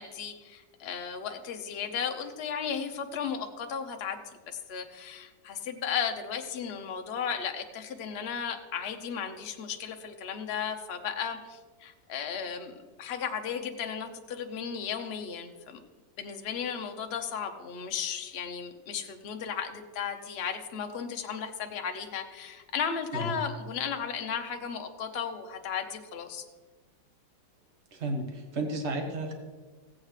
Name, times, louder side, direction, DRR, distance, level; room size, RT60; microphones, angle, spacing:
voice 1, 0.0-4.2 4.5-15.8 16.2-26.4, left 7 dB, 60° left, 5 dB, 0.6 m, -35 dB
voice 2, 27.9-29.3, right 2 dB, 40° right, 3 dB, 1.5 m, -32 dB
15.5 x 8.7 x 3.2 m, 1.4 s
omnidirectional pair, 2.1 m